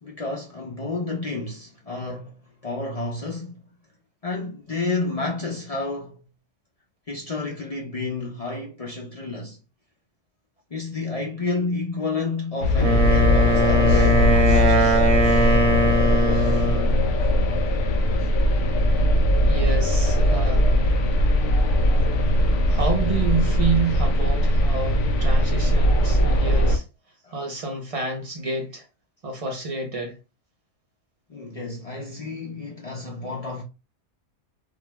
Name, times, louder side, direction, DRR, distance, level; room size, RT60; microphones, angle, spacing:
voice 1, 0.0-3.6 4.2-6.2 7.1-9.6 10.7-15.6 16.3-16.6 18.2-18.3 26.3-26.4 27.2-27.4 31.3-33.6, left 3 dB, 55° left, 0.4 m, -31 dB
sound 1, 12.6-26.8, left 1 dB, 70° left, 0.9 m, -20 dB
Wind instrument woodwind instrument, 12.8-17.0, right 2 dB, 60° right, 0.9 m, -21 dB
voice 2, 19.5-20.8 22.7-26.8 27.3-28.9 29.2-30.2, right 3 dB, 45° right, 0.5 m, -28 dB
2.4 x 2.3 x 3.0 m
omnidirectional pair, 1.4 m